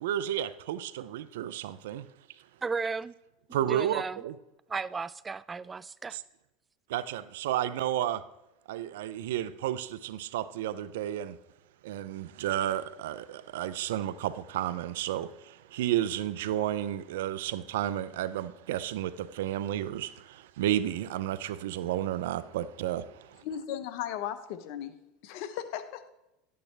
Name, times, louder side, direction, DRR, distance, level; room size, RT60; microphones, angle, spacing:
voice 1, 0.0-2.0 3.5-4.3 6.9-8.2 8.7-11.3 11.9-13.2 13.5-15.3 15.8-19.1 19.4-20.1 20.6-23.0, right 12 dB, 80° right, 0.5 m, -31 dB
voice 2, 2.6-3.1 3.7-4.2 4.7-6.2, right 4 dB, 20° right, 0.3 m, -34 dB
voice 3, 23.4-24.9 25.2-26.0, left 10 dB, 65° left, 0.9 m, -36 dB
11.5 x 8.8 x 3.4 m
hypercardioid pair, 95°, 0 cm